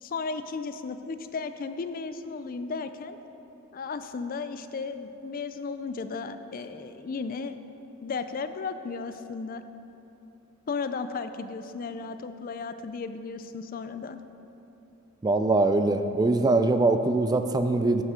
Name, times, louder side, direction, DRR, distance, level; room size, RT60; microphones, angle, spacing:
voice 1, 0.0-3.2 3.7-7.5 8.0-9.6 10.7-14.2, left 4 dB, 45° left, 10 dB, 0.4 m, -35 dB
voice 2, 15.2-18.0, right 2 dB, 20° right, 9 dB, 0.3 m, -22 dB
9.5 x 7.9 x 5.0 m, 3.0 s
head